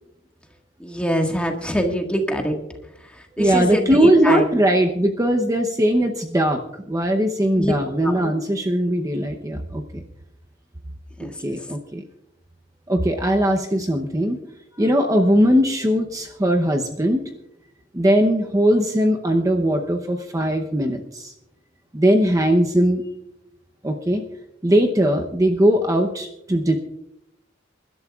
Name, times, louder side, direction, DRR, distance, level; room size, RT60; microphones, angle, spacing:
voice 1, 0.8-2.5 3.4-4.4 7.6-7.7 8.0-8.2, equal, 5° left, 2 dB, 1.7 m, -23 dB
voice 2, 3.4-10.0 11.2-12.0 12.9-14.4 14.8-17.2 17.9-21.3 21.9-23.0 23.8-24.2 24.6-26.8, equal, 20° right, 3 dB, 0.8 m, -20 dB
27.5 x 12.0 x 2.4 m, 0.86 s
head